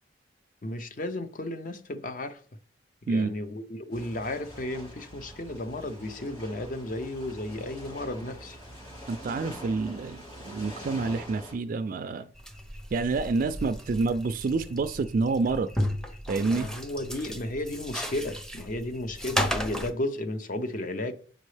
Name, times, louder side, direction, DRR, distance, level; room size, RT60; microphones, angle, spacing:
voice 1, 0.6-2.4 3.1-8.6 16.4-21.1, left 1 dB, 45° left, 0.7 m, -34 dB
sound 1, 3.9-11.5, equal, 30° left, 3.2 m, -44 dB
voice 2, 9.1-12.3 12.9-15.7 16.3-16.7, right 3 dB, 45° right, 0.3 m, -28 dB
sound 2, 12.4-19.9, equal, 5° left, 0.6 m, -34 dB
7.6 x 5.2 x 3.3 m
head